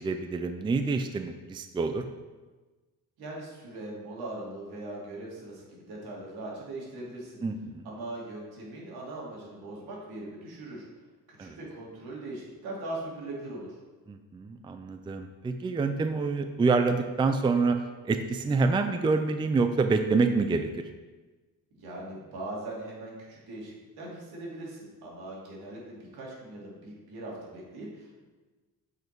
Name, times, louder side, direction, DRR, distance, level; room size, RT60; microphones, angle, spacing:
voice 1, 0.0-2.0 7.4-7.9 11.4-11.6 14.1-17.8 18.1-20.7, right 4 dB, 15° right, 7 dB, 0.4 m, -27 dB
voice 2, 3.2-7.4 7.8-10.8 11.3-13.8 21.7-28.2, right 2 dB, 85° right, -4 dB, 2.8 m, -40 dB
8.1 x 5.3 x 4.5 m, 1.3 s
cardioid pair, 135°, 37 cm